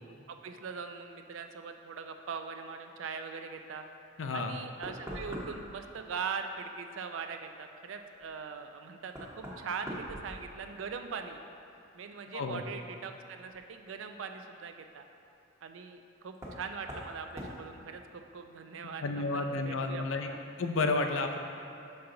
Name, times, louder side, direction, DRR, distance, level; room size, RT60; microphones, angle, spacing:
voice 1, 0.1-3.8 4.3-11.4 11.9-15.0 15.6-20.4, right 5 dB, 70° right, 6 dB, 0.4 m, -41 dB
voice 2, 4.2-4.6 12.3-12.6 19.0-20.3 20.6-21.4, left 3 dB, 70° left, 5 dB, 0.5 m, -31 dB
Knock, 4.8-5.8 8.2-8.3 9.1-10.9 11.3-11.8 13.5-13.6 16.3-16.6 16.9-17.1 17.4-17.6, equal, 15° right, 0.9 m, -42 dB
5.8 x 5.4 x 3.8 m, 2.7 s
head